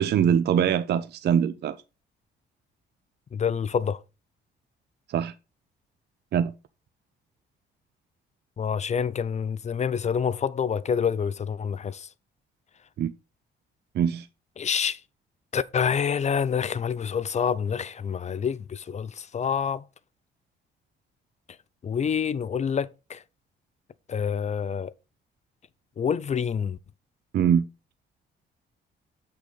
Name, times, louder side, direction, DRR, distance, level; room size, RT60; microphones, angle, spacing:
voice 1, 0.0-1.8 5.1-5.3 6.3-6.5 13.0-13.1 13.9-14.3 27.3-27.7, right 8 dB, 55° right, 0.5 m, -23 dB
voice 2, 3.3-4.0 8.6-12.1 14.6-15.0 15.5-19.8 21.8-23.2 24.1-24.9 26.0-26.8, left 7 dB, 35° left, 0.4 m, -27 dB
8.1 x 3.9 x 5.2 m
cardioid pair, 90°, 20 cm